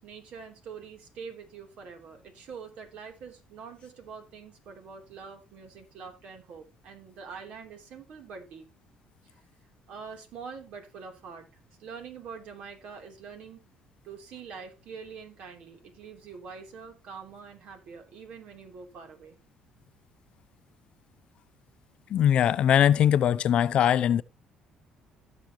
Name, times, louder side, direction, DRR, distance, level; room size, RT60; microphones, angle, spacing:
voice 1, 0.0-8.7 9.2-9.4 9.9-13.6 14.0-19.4, right 5 dB, 70° right, 3.3 m, -45 dB
voice 2, 22.1-24.2, left 10 dB, 60° left, 0.5 m, -21 dB
16.0 x 6.4 x 3.0 m
cardioid pair, 100°, 2 cm